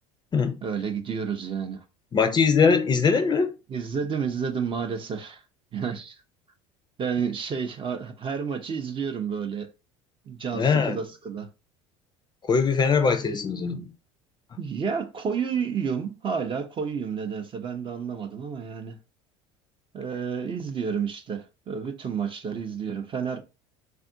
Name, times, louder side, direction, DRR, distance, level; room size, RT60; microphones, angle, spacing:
voice 1, 0.6-1.8 3.7-5.4 5.7-6.2 7.0-9.7 10.3-11.5 14.6-19.0 19.9-23.4, right 6 dB, 30° right, 0.6 m, -30 dB
voice 2, 2.1-3.5 10.5-11.0 12.5-13.9, left 5 dB, 25° left, 0.5 m, -21 dB
3.5 x 2.5 x 2.6 m
hypercardioid pair, 75°, 16 cm